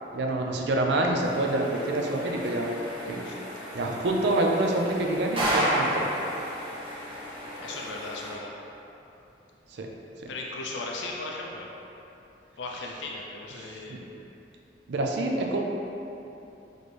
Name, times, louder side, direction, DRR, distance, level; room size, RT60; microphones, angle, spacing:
voice 1, 0.1-2.8 3.1-3.2 3.7-6.1 9.7-9.9 13.6-14.0 14.9-15.6, right 2 dB, 65° right, 1 dB, 0.4 m, -27 dB
sound 1, 1.2-8.3, equal, 30° right, 0.9 m, -32 dB
voice 2, 7.6-8.5 10.3-11.7 12.6-14.0, left 3 dB, 75° left, -1 dB, 0.4 m, -36 dB
4.2 x 3.1 x 3.2 m, 3.0 s
head